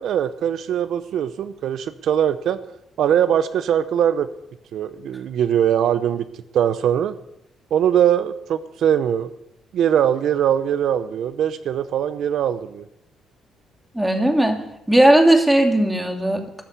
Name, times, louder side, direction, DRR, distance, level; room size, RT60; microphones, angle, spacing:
voice 1, 0.0-2.6 3.0-4.3 4.7-6.2 6.5-7.1 7.7-9.3 9.7-12.8, right 9 dB, 75° right, 12 dB, 0.7 m, -21 dB
voice 2, 13.9-14.6 14.9-16.4, right 1 dB, 10° right, 4 dB, 2.7 m, -16 dB
13.5 x 9.9 x 8.2 m, 0.83 s
cardioid pair, 90°, 0 cm